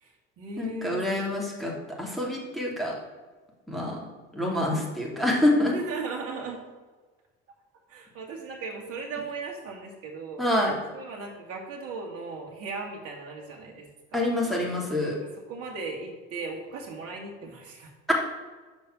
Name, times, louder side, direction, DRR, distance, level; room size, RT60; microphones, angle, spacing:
voice 1, 0.0-1.0 5.7-6.6 7.9-10.5 10.9-14.3 15.2-17.9, right 4 dB, 50° right, -1 dB, 1.9 m, -37 dB
voice 2, 0.6-2.9 3.7-4.1 4.3-5.7 10.4-10.7 14.1-15.2 18.1-18.2, left 1 dB, ahead, -3 dB, 2.8 m, -26 dB
7.2 x 5.2 x 6.1 m, 1.3 s
hypercardioid pair, 70°, 29 cm